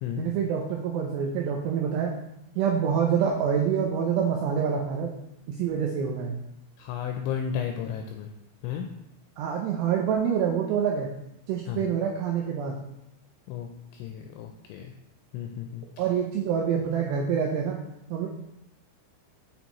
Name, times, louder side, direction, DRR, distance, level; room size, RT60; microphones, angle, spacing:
voice 1, 0.2-2.2 2.6-5.1 5.5-6.4 9.4-11.1 11.5-12.8 16.0-17.8 18.1-18.3, right 7 dB, 85° right, 0 dB, 2.4 m, -26 dB
voice 2, 6.8-8.3 8.6-8.9 11.7-11.8 13.5-14.9 15.3-15.8, left 8 dB, 85° left, 3 dB, 2.8 m, -33 dB
7.0 x 6.3 x 3.0 m, 0.85 s
omnidirectional pair, 5.6 m